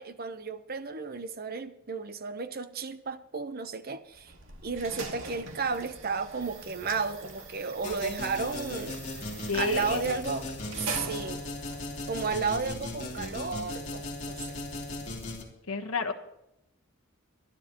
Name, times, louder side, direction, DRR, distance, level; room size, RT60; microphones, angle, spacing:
voice 1, 0.0-4.3 4.6-9.0 9.5-10.5 10.8-11.4 12.1-14.5, right 5 dB, 45° right, 0.9 m, -33 dB
sound 1, 4.1-13.4, right 3 dB, 60° right, 2.2 m, -43 dB
sound 2, 7.8-15.4, left 2 dB, 35° left, 3.0 m, -37 dB
voice 2, 9.5-10.0 15.7-16.1, left 5 dB, 75° left, 1.3 m, -30 dB
24.5 x 11.5 x 3.0 m
head